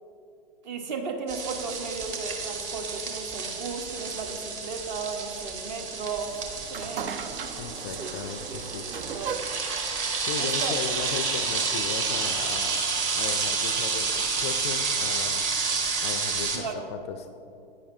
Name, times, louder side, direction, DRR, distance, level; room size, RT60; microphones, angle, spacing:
voice 1, 0.6-6.4 6.7-7.2 8.0-8.1 8.5-9.5 10.4-10.8 16.5-16.9, right 4 dB, 50° right, 5 dB, 1.0 m, -35 dB
sound 1, 1.3-16.6, right 4 dB, 25° right, 0.9 m, -30 dB
sound 2, 6.2-11.5, right 7 dB, 70° right, 0.6 m, -38 dB
voice 2, 7.6-8.9 10.2-12.9 13.1-15.5 16.0-17.3, left 7 dB, 30° left, 8 dB, 0.4 m, -36 dB
10.5 x 8.7 x 2.6 m, 2.7 s
figure-of-eight pair, 110°, 29 cm